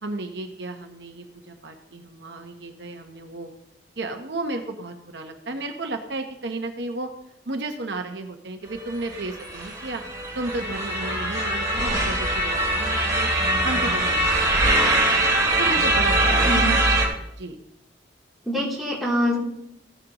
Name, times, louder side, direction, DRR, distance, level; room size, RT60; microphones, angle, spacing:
voice 1, 0.0-3.5 4.0-7.1 7.5-10.0 10.3-13.3 13.6-15.2 15.6-17.1 17.4-17.6, right 2 dB, 65° right, 5 dB, 0.9 m, -33 dB
sound 1, 8.9-17.1, right 1 dB, 20° right, 2.8 m, -22 dB
voice 2, 16.4-16.7 18.4-19.4, equal, ahead, -6 dB, 3.0 m, -24 dB
15.0 x 10.0 x 3.0 m, 0.78 s
head